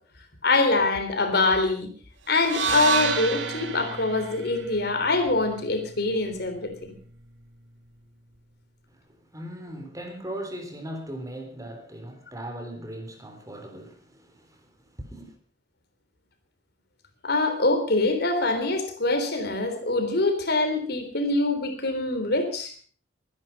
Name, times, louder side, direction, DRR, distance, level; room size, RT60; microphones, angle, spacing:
voice 1, 0.4-1.9 2.3-6.7 17.2-22.7, left 2 dB, 60° left, 3.6 m, -24 dB
sound 1, 2.4-6.6, right 5 dB, 85° right, 2.0 m, -30 dB
voice 2, 8.9-15.3, right 1 dB, 20° right, 3.6 m, -39 dB
23.5 x 11.0 x 5.4 m
head